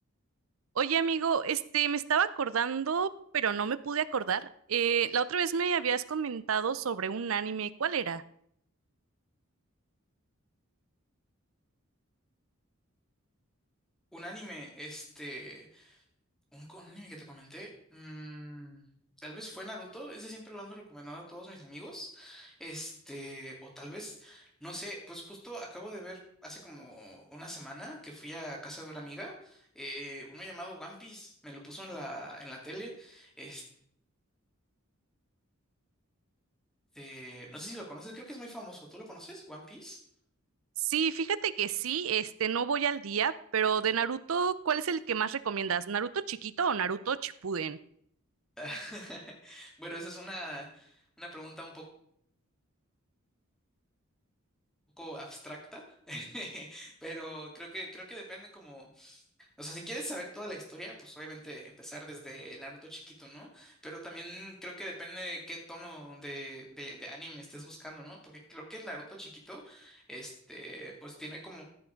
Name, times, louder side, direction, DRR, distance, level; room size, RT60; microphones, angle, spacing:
voice 1, 0.8-8.2 40.8-47.8, right 7 dB, 75° right, 16 dB, 0.6 m, -30 dB
voice 2, 14.1-16.0 16.5-18.9 19.2-33.6 36.9-40.0 48.6-51.9 55.0-71.7, equal, 5° left, -1 dB, 2.5 m, -43 dB
14.0 x 5.9 x 5.1 m, 0.67 s
head